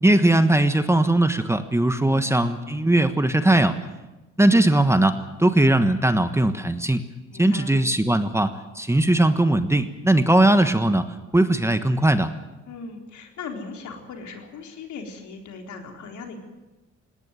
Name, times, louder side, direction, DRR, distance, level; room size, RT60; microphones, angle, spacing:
voice 1, 0.0-3.8 4.4-7.1 7.4-11.1 11.3-12.3, right 1 dB, 10° right, 9 dB, 1.3 m, -19 dB
voice 2, 7.3-7.7 12.7-16.4, left 4 dB, 70° left, 3 dB, 4.0 m, -38 dB
19.0 x 18.5 x 9.2 m, 1.1 s
cardioid pair, 90°, 30 cm